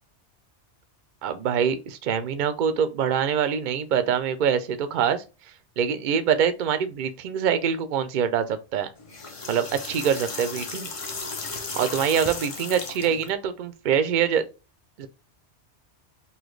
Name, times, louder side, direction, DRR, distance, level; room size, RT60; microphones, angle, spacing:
voice 1, 1.2-5.2 5.8-8.9 9.5-10.9 11.8-14.4 15.0-15.1, right 7 dB, 55° right, 0.6 m, -24 dB
sound 1, 9.0-13.3, left 4 dB, 35° left, 0.6 m, -35 dB
4.0 x 2.9 x 3.2 m
omnidirectional pair, 1.2 m